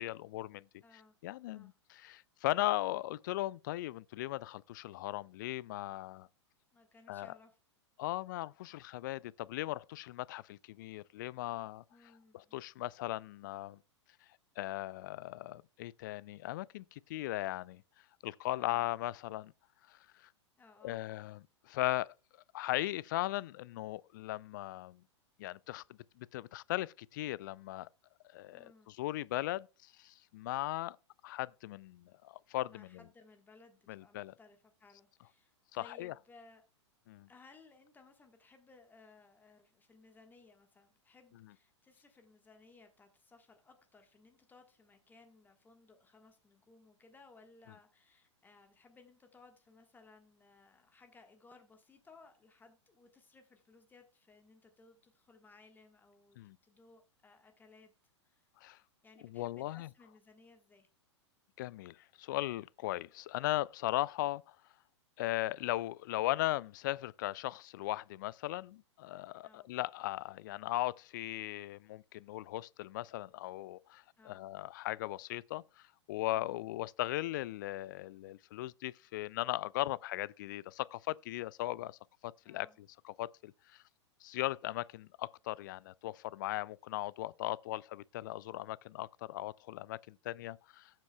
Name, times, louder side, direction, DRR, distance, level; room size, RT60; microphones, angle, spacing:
voice 1, 0.0-0.7 1.2-6.3 7.1-7.3 8.0-11.8 12.3-13.8 14.6-17.8 18.2-19.5 19.9-20.3 20.8-22.1 22.5-25.0 25.4-25.8 26.2-27.9 28.3-31.0 31.2-33.0 33.9-34.3 35.7-36.1 37.1-37.3 56.4-56.6 58.6-58.8 59.2-59.9 61.6-64.6 65.2-83.8 84.2-90.9, left 16 dB, 40° left, 0.4 m, -38 dB
voice 2, 0.8-1.2 1.4-1.8 6.7-7.6 11.9-12.5 18.5-18.9 20.6-21.0 28.5-28.9 32.7-36.6 37.3-57.9 58.2-58.5 59.0-60.9 69.4-69.7 74.2-74.5 76.3-76.7 82.4-82.8, left 3 dB, 10° left, 1.3 m, -61 dB
18.0 x 7.4 x 2.2 m
figure-of-eight pair, 100°, 15 cm